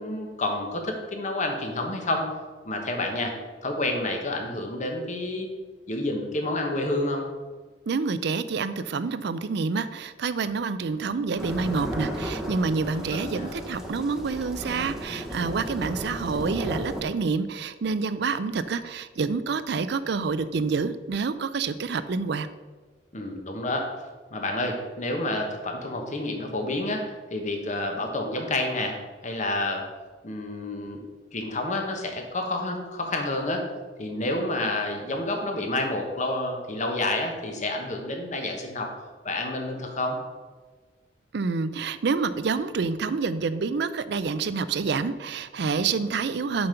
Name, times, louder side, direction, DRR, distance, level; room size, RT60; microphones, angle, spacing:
voice 1, 0.0-2.3 2.7-5.5 5.9-7.3 12.9-13.5 23.1-23.9 24.3-29.8 30.2-31.0 31.3-33.7 34.0-38.9 39.2-40.2, left 2 dB, 45° left, 3 dB, 1.2 m, -29 dB
voice 2, 7.9-22.5 41.3-46.7, right 4 dB, 70° right, 14 dB, 0.5 m, -28 dB
sound 1, 11.4-17.0, equal, 5° right, 0.9 m, -34 dB
6.8 x 5.3 x 5.7 m, 1.4 s
head